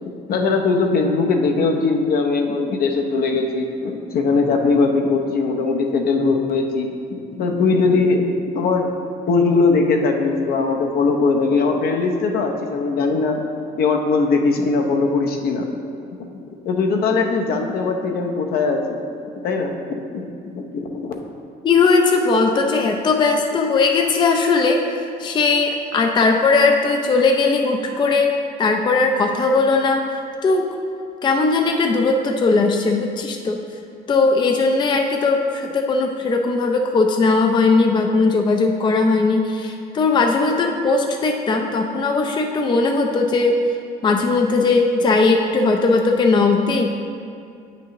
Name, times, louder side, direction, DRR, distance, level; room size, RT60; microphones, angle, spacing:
voice 1, 0.0-6.9 7.3-8.9 9.3-13.5 13.8-15.7 16.2-16.3 16.6-19.0 19.4-21.2, left 4 dB, 65° left, 2 dB, 0.7 m, -20 dB
voice 2, 21.6-24.8 25.2-28.3 28.6-30.0 30.4-30.7 31.2-33.6 34.1-43.6 44.0-46.9, left 3 dB, 25° left, 3 dB, 0.4 m, -18 dB
8.1 x 6.0 x 3.0 m, 2.5 s
cardioid pair, 110°, 17 cm